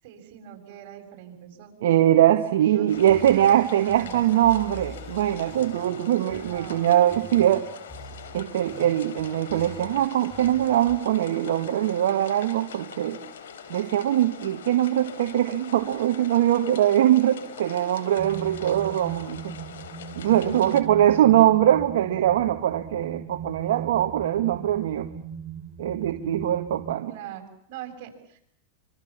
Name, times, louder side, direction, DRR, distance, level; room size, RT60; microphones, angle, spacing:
voice 1, 0.0-1.7 2.6-4.4 6.4-7.0 20.1-20.9 27.1-28.5, right 8 dB, 55° right, 5 dB, 7.4 m, -43 dB
voice 2, 1.8-7.7 8.3-13.2 13.7-19.5 20.2-25.1 25.8-27.1, right 12 dB, 75° right, 6 dB, 1.6 m, -22 dB
sound 1, 2.9-20.8, left 7 dB, 85° left, 3.5 m, -43 dB
sound 2, 2.9-11.0, left 1 dB, 15° left, 4.2 m, -46 dB
sound 3, 18.2-27.0, right 6 dB, 15° right, 2.8 m, -39 dB
25.5 x 24.5 x 7.4 m, 0.70 s
hypercardioid pair, 125°, 0 cm